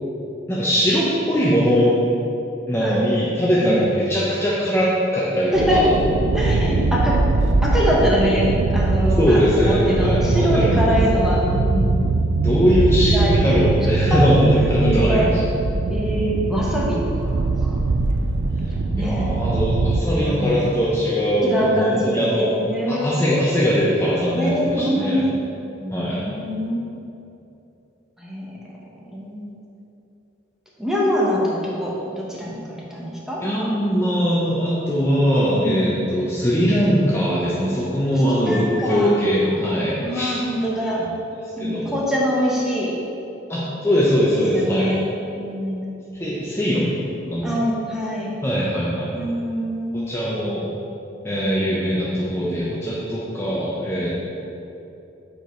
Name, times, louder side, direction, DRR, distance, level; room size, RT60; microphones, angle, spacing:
voice 1, 0.5-1.9 2.7-6.0 9.1-11.6 12.4-15.4 19.0-22.5 22.9-25.2 25.9-26.2 33.4-40.4 40.9-41.1 41.6-42.1 43.5-44.9 46.2-47.0 47.3-47.6 48.4-49.2 50.1-50.6 51.2-54.1, equal, 15° left, -8 dB, 0.8 m, -21 dB
sound 1, 5.5-20.0, right 3 dB, 70° right, 0.4 m, -21 dB
voice 2, 6.3-7.1 7.6-11.9 13.1-13.4 14.1-14.2 14.8-15.3 15.9-17.9 18.7-19.2 20.1-20.6 21.4-23.2 24.3-25.4 25.8-26.8 28.2-28.4 29.1-29.5 30.8-32.6 32.9-33.4 35.6-36.1 38.3-39.2 40.0-41.0 41.6-42.9 44.5-45.1 45.3-45.8 47.4-48.4 49.1-50.0, equal, 5° right, -5 dB, 1.2 m, -24 dB
7.7 x 4.9 x 4.5 m, 2.8 s
head